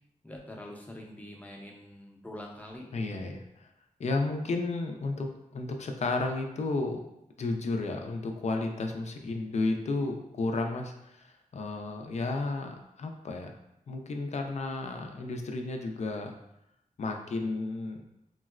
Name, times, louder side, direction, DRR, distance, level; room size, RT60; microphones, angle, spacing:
voice 1, 0.2-3.2, left 1 dB, 10° left, -1 dB, 0.6 m, -45 dB
voice 2, 2.9-3.7 4.0-7.0 7.4-13.5 13.9-16.3 17.0-18.0, left 3 dB, 55° left, 4 dB, 0.4 m, -32 dB
3.7 x 2.0 x 2.4 m, 0.84 s
cardioid pair, 70°, 14 cm